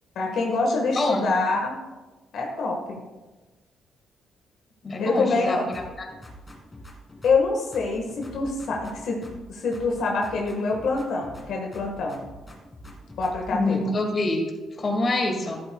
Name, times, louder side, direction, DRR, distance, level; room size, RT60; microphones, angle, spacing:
voice 1, 0.1-1.7 2.3-3.0 5.0-5.6 7.2-9.2 9.5-12.2 13.2-13.8, left 3 dB, 70° left, 0 dB, 1.5 m, -25 dB
voice 2, 1.0-1.3 4.8-5.6 6.0-6.1 13.5-14.4 14.8-15.6, left 2 dB, 35° left, 2 dB, 2.1 m, -25 dB
sound 1, 5.7-7.5 7.7-9.5 9.7-11.5 11.7-13.6, equal, 20° left, 2.4 m, -45 dB
12.5 x 11.0 x 2.3 m, 1.2 s
cardioid pair, 90°, 0 cm